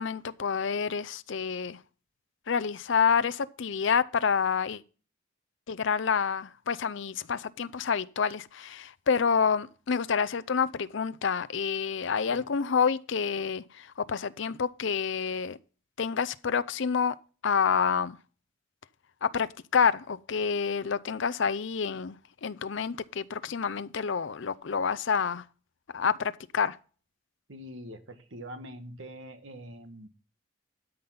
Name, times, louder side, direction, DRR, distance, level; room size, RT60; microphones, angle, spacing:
voice 1, 0.0-1.8 2.5-4.8 5.7-15.6 16.0-17.1 17.4-18.2 19.2-19.5 19.7-22.2 22.4-25.4 25.9-26.8, left 6 dB, 60° left, 0.5 m, -28 dB
voice 2, 27.5-30.1, equal, 70° right, 1.4 m, -44 dB
12.5 x 5.4 x 5.7 m
head